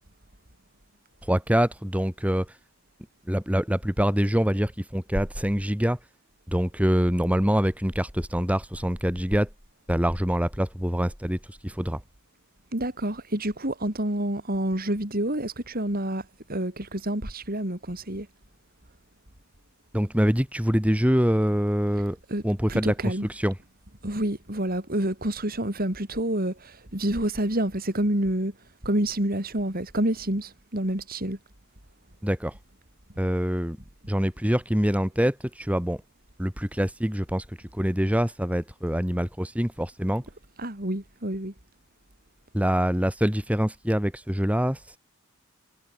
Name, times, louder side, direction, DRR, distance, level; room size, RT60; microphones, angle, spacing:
voice 1, 1.3-2.5 3.3-6.0 6.5-9.5 9.9-12.0 19.9-22.2 22.4-23.5 32.2-32.5 33.2-33.8 34.1-36.0 36.4-37.4 37.7-40.2 42.5-45.0, equal, 5° right, 2.4 m, -25 dB
voice 2, 12.7-18.3 22.3-22.4 22.7-23.3 24.0-31.4 40.6-41.5, right 1 dB, 45° right, 4.3 m, -28 dB
head